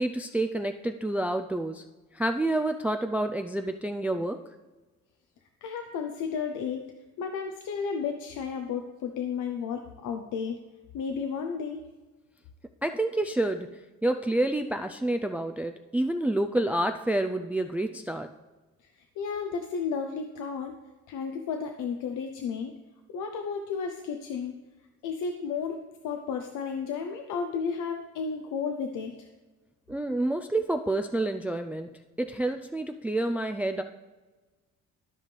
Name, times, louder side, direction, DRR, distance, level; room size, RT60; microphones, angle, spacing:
voice 1, 0.0-1.8 2.1-4.4 12.8-18.3 29.9-31.9 32.2-33.8, right 1 dB, 5° right, 7 dB, 0.4 m, -28 dB
voice 2, 5.6-10.6 10.9-11.8 18.8-20.7 21.1-22.8 23.1-24.6 25.0-29.3, left 6 dB, 85° left, 5 dB, 0.7 m, -33 dB
13.0 x 5.2 x 3.2 m, 1.2 s
cardioid pair, 90°, 30 cm